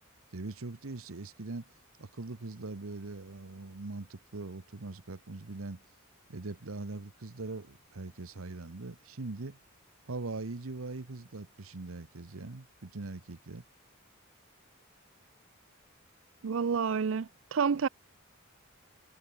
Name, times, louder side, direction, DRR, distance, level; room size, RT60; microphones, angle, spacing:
voice 1, 0.3-1.7 2.0-5.8 6.3-9.6 10.1-13.6, right 3 dB, 90° right, 1.0 m, -41 dB
voice 2, 16.4-17.9, right 6 dB, 65° right, 0.5 m, -29 dB
head